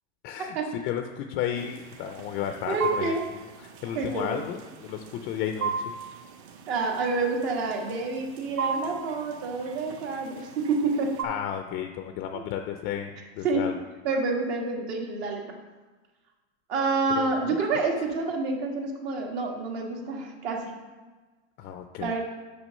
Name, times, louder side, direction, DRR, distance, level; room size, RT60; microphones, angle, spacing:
voice 1, 0.2-3.1 3.6-5.7 11.2-13.7 17.2-17.6 21.6-22.1, left 9 dB, 30° left, 6 dB, 0.4 m, -33 dB
sound 1, 1.6-11.2, right 5 dB, 40° right, 0.7 m, -37 dB
voice 2, 2.7-3.3 4.0-4.4 6.7-11.2 12.3-12.4 13.4-13.8 14.0-15.5 16.7-20.7 22.0-22.2, right 3 dB, 65° right, 1 dB, 1.7 m, -28 dB
6.1 x 6.1 x 5.3 m, 1.3 s
supercardioid pair, 145°, 33 cm